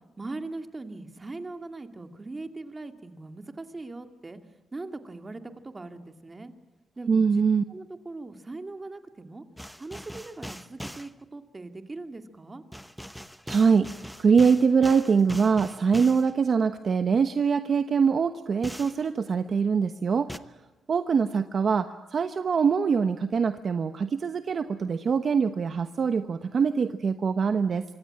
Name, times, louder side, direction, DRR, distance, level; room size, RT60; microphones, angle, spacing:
voice 1, 0.2-4.4 4.7-6.5 7.0-7.4 7.7-9.4 9.8-12.6, right 2 dB, 20° right, 7 dB, 2.3 m, -40 dB
voice 2, 7.1-7.6 13.5-13.9 14.2-20.3 20.9-27.8, right 5 dB, 45° right, 9 dB, 1.0 m, -23 dB
sound 1, 9.6-11.1 12.7-16.3 18.6-19.0 20.3-20.4, equal, ahead, 1.0 m, -41 dB
25.5 x 24.5 x 8.7 m, 1.1 s
cardioid pair, 145°, 0 cm